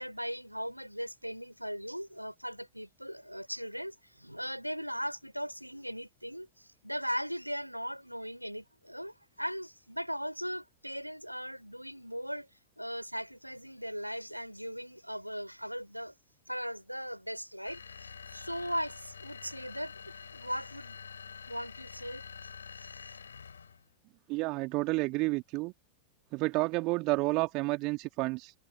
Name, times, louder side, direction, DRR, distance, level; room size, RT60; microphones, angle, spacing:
voice 1, 0.0-12.5 12.8-16.1 16.5-19.9 20.3-21.0 21.5-22.2 22.8-23.1, equal, 90° right, 6.7 m, -38 dB
sound 1, 17.6-23.8, left 6 dB, 70° left, 5.8 m, -47 dB
voice 2, 24.3-25.7 26.3-28.5, right 24 dB, 40° right, 2.5 m, -30 dB
figure-of-eight pair, 90°, 0 cm